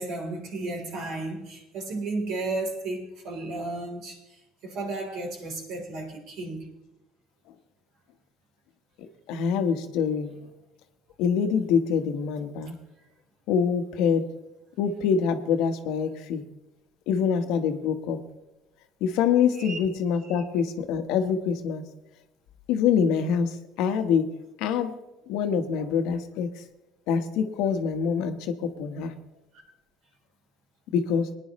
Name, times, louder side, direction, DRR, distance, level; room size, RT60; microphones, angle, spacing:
voice 1, 0.0-6.7 19.6-19.8 20.2-20.4 25.8-25.9, right 2 dB, 65° right, 3.7 m, -34 dB
voice 2, 9.0-10.3 11.2-12.7 13.5-14.2 14.8-16.4 17.1-18.2 19.0-21.8 22.7-24.3 24.6-24.9 25.3-26.6 27.1-29.1 30.9-31.3, left 7 dB, 75° left, 1.2 m, -25 dB
20.0 x 10.0 x 3.1 m
supercardioid pair, 105°, 0 cm